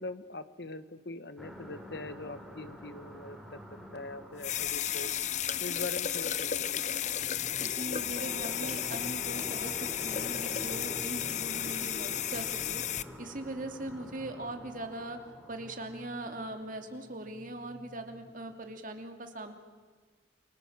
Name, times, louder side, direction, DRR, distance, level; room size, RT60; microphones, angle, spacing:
voice 1, 0.0-3.6 3.9-5.1 5.6-7.1, left 2 dB, 60° left, 12 dB, 1.3 m, -42 dB
sound 1, 1.4-18.8, equal, ahead, 3.5 m, -48 dB
sound 2, 4.4-13.0, left 10 dB, 40° left, 0.7 m, -33 dB
voice 2, 7.6-12.8 13.2-15.2 15.5-19.5, right 1 dB, 45° right, 6 dB, 2.7 m, -40 dB
29.5 x 24.0 x 7.4 m, 1.5 s
head